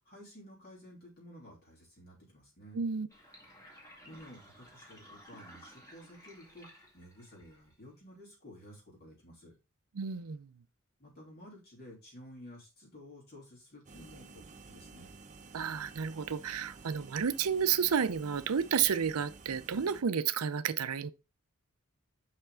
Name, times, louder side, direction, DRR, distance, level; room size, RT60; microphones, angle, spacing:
voice 1, 0.0-2.8 4.0-9.5 11.0-15.1, equal, 45° left, 3.3 m, -53 dB
voice 2, 2.7-3.1 10.0-10.5 15.5-21.1, right 7 dB, 85° right, 0.6 m, -31 dB
Sink (filling or washing), 3.1-8.0, equal, 15° left, 2.2 m, -56 dB
sound 1, 13.9-20.0, right 3 dB, 30° right, 0.7 m, -52 dB
5.8 x 5.6 x 3.8 m
head